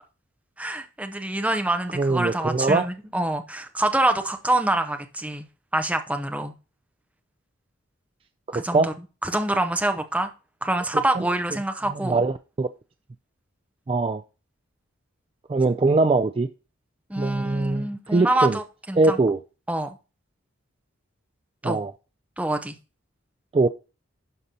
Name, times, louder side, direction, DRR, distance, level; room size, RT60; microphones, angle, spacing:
voice 1, 0.6-5.4 5.7-6.5 8.5-8.9 9.2-10.3 10.6-12.2 17.1-19.2 19.7-19.9 21.6-21.8 22.4-22.7, right 1 dB, 5° right, 0.7 m, -26 dB
voice 2, 1.9-2.9 8.5-8.9 11.2-11.3 12.0-12.7 13.9-14.2 15.5-16.5 17.2-18.6 19.0-19.4 21.6-21.9 23.5-23.7, right 3 dB, 25° right, 0.3 m, -22 dB
11.0 x 5.3 x 2.8 m
head